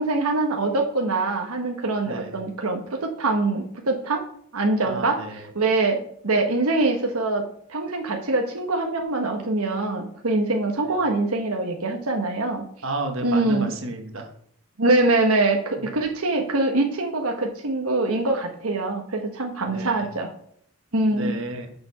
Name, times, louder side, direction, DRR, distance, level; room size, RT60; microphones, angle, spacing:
voice 1, 0.0-4.2 4.5-7.4 7.7-12.6 13.2-13.7 14.8-20.3 20.9-21.4, right 2 dB, 85° right, 3 dB, 1.2 m, -24 dB
voice 2, 4.8-5.4 12.8-14.3 15.8-15.9 19.7-20.1 21.1-21.7, right 2 dB, 60° right, 4 dB, 1.4 m, -32 dB
7.0 x 6.8 x 5.7 m, 0.64 s
head